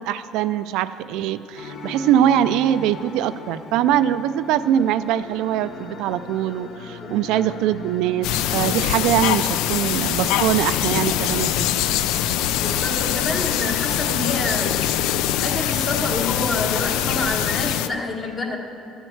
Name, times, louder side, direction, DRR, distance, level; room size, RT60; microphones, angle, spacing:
voice 1, 0.0-11.7, right 11 dB, 80° right, 12 dB, 0.3 m, -22 dB
sound 1, 1.5-18.0, left 3 dB, 60° left, 1.0 m, -39 dB
voice 2, 7.0-7.4 12.6-14.8 15.4-18.6, left 2 dB, 35° left, 2 dB, 1.3 m, -27 dB
sound 2, 8.2-17.9, left 11 dB, 85° left, 0.3 m, -23 dB
12.5 x 4.5 x 7.8 m, 2.8 s
cardioid pair, 125°, 0 cm